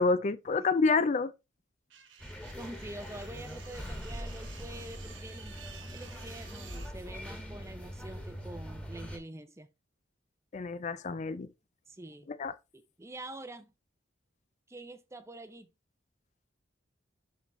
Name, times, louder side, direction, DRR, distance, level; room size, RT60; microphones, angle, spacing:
voice 1, 0.0-1.3 10.5-11.5 12.3-12.5, left 3 dB, 40° left, 0.4 m, -28 dB
sound 1, 1.9-6.9, right 7 dB, 90° right, 1.4 m, -52 dB
sound 2, 2.2-9.2, equal, 5° left, 1.5 m, -42 dB
voice 2, 2.6-5.6 5.9-9.7 11.9-12.3 12.7-13.7 14.7-15.7, right 1 dB, 15° right, 0.6 m, -46 dB
10.5 x 4.1 x 3.1 m
head